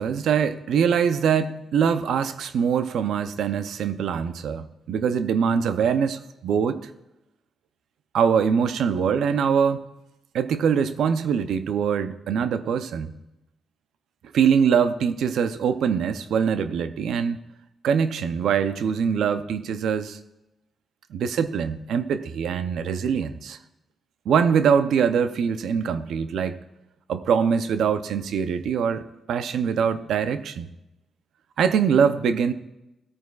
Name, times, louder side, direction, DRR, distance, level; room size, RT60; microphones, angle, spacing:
voice 1, 0.0-6.8 8.1-9.8 10.3-13.1 14.3-17.4 17.8-20.2 21.1-23.6 24.3-26.6 27.1-29.0 29.3-30.7 31.6-32.5, right 7 dB, 80° right, 0.6 m, -23 dB
17.0 x 9.2 x 2.4 m
cardioid pair, 75°, 0 cm